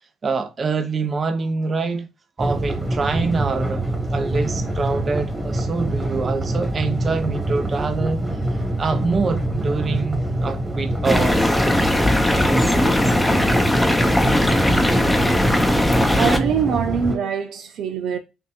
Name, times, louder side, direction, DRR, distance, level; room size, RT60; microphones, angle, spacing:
voice 1, 0.2-2.1 2.4-3.8 4.1-8.3 8.8-11.6, right 4 dB, 40° right, 0.8 m, -25 dB
sound 1, 2.4-17.2, right 1 dB, 15° right, 1.5 m, -25 dB
sound 2, 11.0-16.4, left 1 dB, 5° left, 0.8 m, -19 dB
voice 2, 16.1-18.2, right 7 dB, 75° right, 0.4 m, -23 dB
5.9 x 2.7 x 2.4 m
cardioid pair, 90°, 0 cm